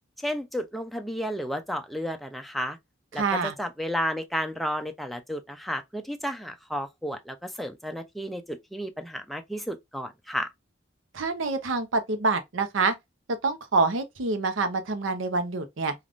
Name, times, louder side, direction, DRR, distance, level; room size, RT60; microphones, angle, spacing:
voice 1, 0.2-2.8 3.1-10.5, equal, ahead, 0.3 m, -32 dB
voice 2, 3.2-3.5 11.1-12.9 13.4-15.9, right 3 dB, 80° right, 0.7 m, -26 dB
3.4 x 2.4 x 2.4 m
head